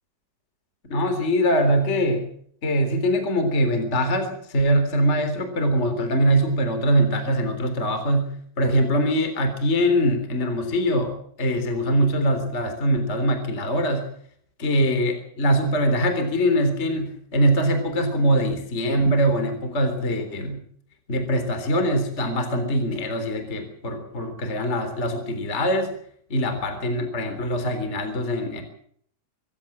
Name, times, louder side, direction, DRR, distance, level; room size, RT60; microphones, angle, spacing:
voice 1, 0.9-2.3 2.6-14.1 14.6-20.6 21.1-25.9 26.3-28.6, equal, 15° left, 8 dB, 3.3 m, -23 dB
24.5 x 15.5 x 7.4 m, 0.63 s
omnidirectional pair, 5.0 m